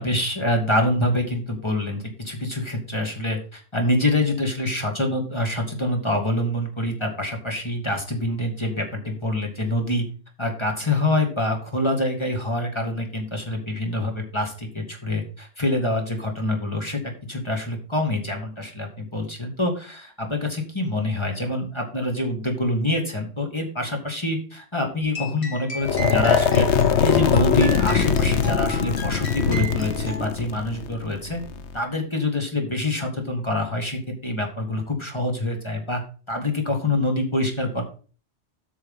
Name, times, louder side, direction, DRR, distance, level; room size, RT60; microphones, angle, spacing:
voice 1, 0.0-10.0 10.4-17.0 17.3-26.7 27.0-31.4 31.7-36.0 36.3-37.8, left 1 dB, 25° left, 2 dB, 2.1 m, -26 dB
sound 1, 25.0-30.3, right 1 dB, 50° left, 3.4 m, -35 dB
sound 2, 25.8-31.8, left 7 dB, 80° left, 1.1 m, -22 dB
8.4 x 6.3 x 5.5 m, 0.37 s
omnidirectional pair, 1.1 m